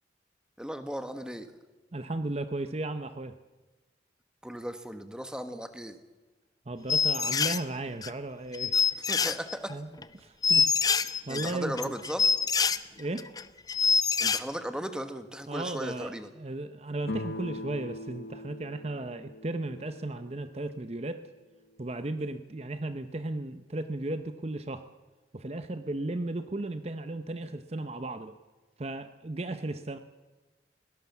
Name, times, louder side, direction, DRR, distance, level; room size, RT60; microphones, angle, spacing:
voice 1, 0.6-1.5 4.4-6.0 9.1-9.7 11.3-12.3 14.2-16.3, equal, 5° right, 9 dB, 1.3 m, -36 dB
voice 2, 1.9-3.4 6.7-9.0 9.7-9.9 10.1-11.9 13.0-13.3 15.5-21.2 21.8-24.9 25.3-28.3 28.8-30.0, right 2 dB, 35° right, 10 dB, 0.7 m, -35 dB
sound 1, 6.9-7.6 8.0-8.1 8.5-9.7 10.0-10.1 10.4-12.8 13.2-13.4 13.7-14.4, left 6 dB, 20° left, 0.6 m, -25 dB
sound 2, 17.0-20.7, left 1 dB, 75° left, 1.3 m, -41 dB
21.5 x 17.5 x 7.3 m, 1.2 s
head